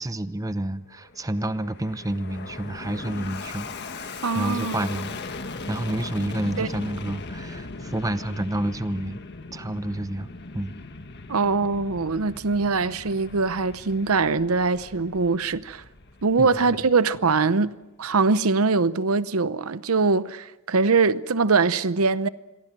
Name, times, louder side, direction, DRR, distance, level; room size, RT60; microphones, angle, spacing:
voice 1, 0.0-5.2 5.7-9.2 9.5-10.7 16.4-16.9, right 1 dB, 15° right, 0.8 m, -29 dB
Fixed-wing aircraft airplane, 0.9-17.5, left 3 dB, 50° left, 1.7 m, -39 dB
voice 2, 4.2-4.7 6.6-6.7 11.3-15.8 16.2-17.7 18.0-22.3, right 4 dB, 85° right, 0.8 m, -22 dB
28.5 x 23.0 x 6.1 m
head